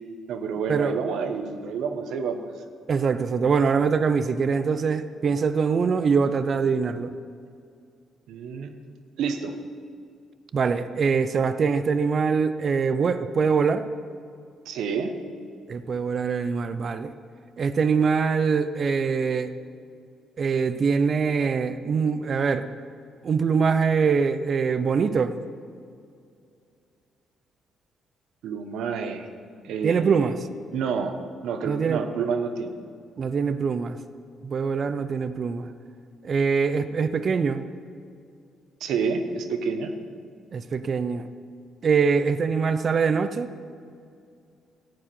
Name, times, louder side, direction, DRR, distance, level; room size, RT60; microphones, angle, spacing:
voice 1, 0.3-2.5 8.3-8.7 9.2-9.6 14.7-15.2 28.4-29.3 29.6-30.3 30.7-32.8 38.8-39.9, right 5 dB, 80° right, 7 dB, 1.0 m, -29 dB
voice 2, 2.9-7.1 10.5-13.9 15.7-17.1 17.6-19.5 20.4-22.7 23.2-25.4 29.8-30.4 31.6-32.0 33.2-34.0 34.4-35.7 36.2-37.7 40.5-41.3 41.8-43.5, right 5 dB, 50° right, 11 dB, 0.5 m, -23 dB
14.5 x 4.9 x 9.1 m, 2.4 s
cardioid pair, 90°, 0 cm